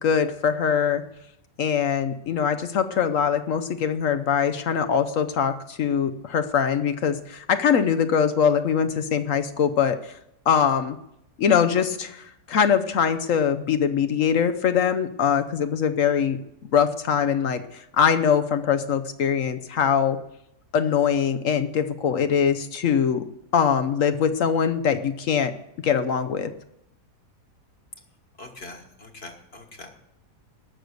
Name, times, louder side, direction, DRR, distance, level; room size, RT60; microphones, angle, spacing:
voice 1, 0.0-1.0 1.6-10.1 10.5-11.0 11.4-16.4 16.7-20.2 20.7-23.3 23.5-25.5 25.8-26.5, left 7 dB, 60° left, 9 dB, 1.0 m, -22 dB
voice 2, 28.4-30.0, left 2 dB, 40° left, 4 dB, 1.6 m, -43 dB
19.5 x 6.6 x 6.5 m, 0.81 s
omnidirectional pair, 1.7 m